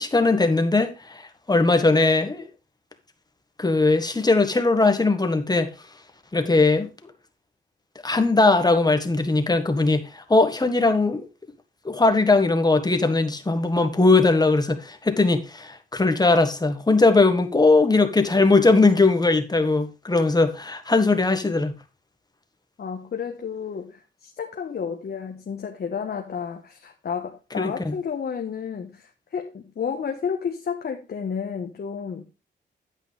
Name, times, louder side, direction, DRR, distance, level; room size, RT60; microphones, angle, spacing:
voice 1, 0.0-2.4 3.6-5.7 6.3-6.9 8.0-11.3 11.8-21.7 27.6-27.9, left 3 dB, 20° left, 1.6 m, -20 dB
voice 2, 22.8-32.3, left 6 dB, 55° left, 1.2 m, -31 dB
9.1 x 8.4 x 3.4 m
cardioid pair, 75°, 20 cm